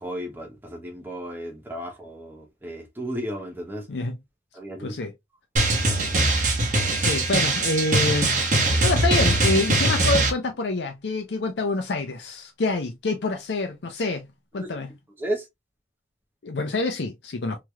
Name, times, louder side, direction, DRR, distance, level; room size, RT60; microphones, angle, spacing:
voice 1, 0.0-3.8 4.6-4.9 14.6-14.7 15.2-15.4, equal, 10° right, 0.8 m, -33 dB
voice 2, 4.8-5.1 7.0-8.4 8.8-14.3 14.5-14.9 16.4-17.6, left 3 dB, 75° left, 0.5 m, -27 dB
Drum, 5.6-10.3, right 2 dB, 40° right, 1.0 m, -21 dB
3.2 x 2.9 x 2.2 m
head